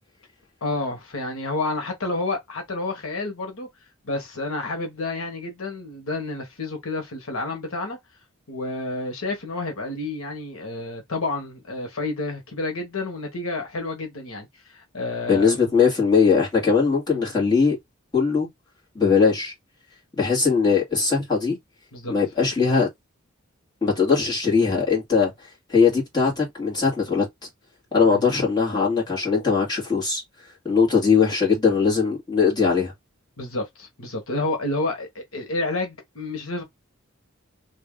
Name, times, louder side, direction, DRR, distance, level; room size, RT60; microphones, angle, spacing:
voice 1, 0.6-3.7 4.0-8.0 8.5-15.7 17.1-17.2 21.9-22.1 28.1-28.2 33.4-36.6, left 2 dB, 85° left, 1.2 m, -30 dB
voice 2, 15.3-17.8 18.1-18.5 19.0-19.5 20.1-21.6 22.1-22.9 23.8-25.3 25.7-27.3 27.9-30.2 30.6-32.9, left 5 dB, 20° left, 1.9 m, -20 dB
3.0 x 2.7 x 3.7 m
head